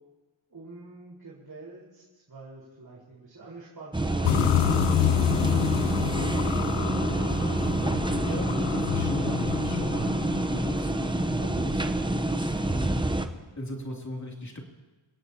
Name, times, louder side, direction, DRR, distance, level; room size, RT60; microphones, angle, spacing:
voice 1, 0.5-4.8, right 3 dB, 45° right, -6 dB, 4.4 m, -47 dB
sound 1, 3.9-13.3, right 2 dB, 10° right, 0.8 m, -27 dB
sound 2, 4.2-11.3, left 14 dB, 80° left, 0.6 m, -29 dB
voice 2, 6.0-6.3 8.1-13.0 13.6-14.6, left 1 dB, 35° left, 0 dB, 2.8 m, -37 dB
27.5 x 17.5 x 2.9 m, 1.2 s
wide cardioid pair, 120°, 48 cm